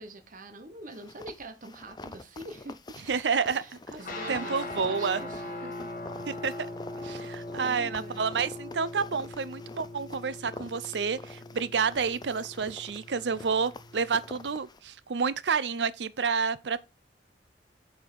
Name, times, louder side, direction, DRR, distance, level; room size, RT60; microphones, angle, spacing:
voice 1, 0.0-5.9 7.0-8.2, right 2 dB, 50° right, 1.0 m, -45 dB
sound 1, 0.9-14.8, left 3 dB, 25° left, 0.5 m, -47 dB
voice 2, 3.1-3.6 4.3-5.2 6.4-6.7 7.0-16.8, right 5 dB, 80° right, 0.6 m, -29 dB
sound 2, 4.0-14.5, left 2 dB, 50° left, 2.1 m, -41 dB
7.6 x 4.4 x 5.3 m
head